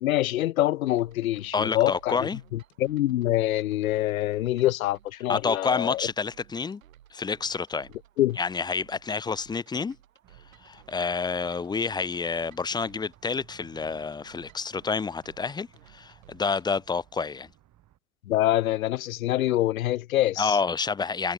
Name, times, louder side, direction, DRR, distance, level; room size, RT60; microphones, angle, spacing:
voice 1, 0.0-6.0 8.2-8.4 18.3-20.6, left 14 dB, 85° left, 0.5 m, -25 dB
sound 1, 0.7-0.9 1.2-1.9 2.3-2.4 2.7-2.9 3.2-4.0 4.6-5.0 5.2-5.9 6.7-6.9 7.2-8.0 8.2-8.3 8.7-8.9 9.2-10.0 10.3-10.4 10.7-10.9 11.2-11.9 12.3-12.4 12.7-12.9 13.2-13.9 14.3-14.4 14.7-15.0 15.2-16.0 16.4-16.7, left 22 dB, 70° left, 4.8 m, -66 dB
sound 2, 0.9-16.7, right 11 dB, 80° right, 3.1 m, -57 dB
voice 2, 1.5-2.4 5.3-6.8 7.1-7.9 8.4-10.0 10.6-17.5 20.4-21.3, left 5 dB, 10° left, 0.4 m, -29 dB
sound 3, 10.2-18.0, right 13 dB, 45° right, 3.7 m, -59 dB
hypercardioid pair, 75°, 40 cm